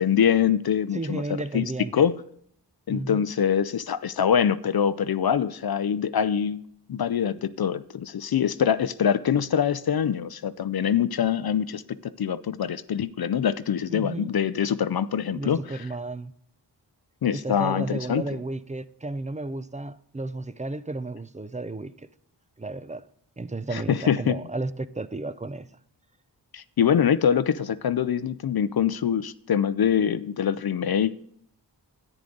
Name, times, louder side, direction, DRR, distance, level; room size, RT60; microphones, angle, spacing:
voice 1, 0.0-1.6 1.9-2.2 2.9-6.6 6.9-15.8 17.2-18.2 23.7-24.4 26.5-31.1, left 8 dB, 55° left, 0.5 m, -24 dB
voice 2, 0.9-1.9 2.9-3.3 13.9-14.3 15.3-16.3 17.3-22.1 22.6-23.0 23.4-25.7, right 2 dB, 15° right, 0.4 m, -33 dB
10.5 x 9.2 x 3.8 m
wide cardioid pair, 60°, 44 cm